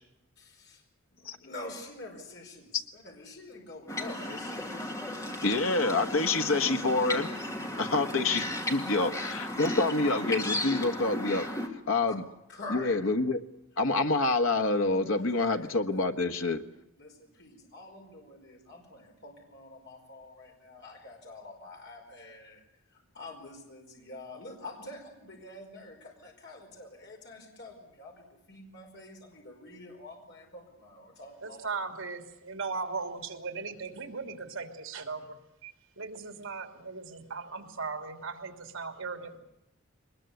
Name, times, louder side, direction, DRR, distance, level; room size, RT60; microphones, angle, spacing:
voice 1, 0.4-0.8 1.1-4.7 12.1-12.2 12.5-13.1 15.1-16.0 17.0-22.6 22.9-31.7, left 2 dB, 55° left, 5.1 m, -47 dB
sound 1, 3.9-11.7, left 1 dB, 15° left, 2.3 m, -35 dB
voice 2, 5.4-7.3 7.8-11.5 11.9-12.2 12.7-13.4 13.8-16.6, left 3 dB, 70° left, 1.4 m, -27 dB
voice 3, 31.4-39.4, right 4 dB, 70° right, 3.2 m, -38 dB
23.0 x 21.0 x 8.3 m
head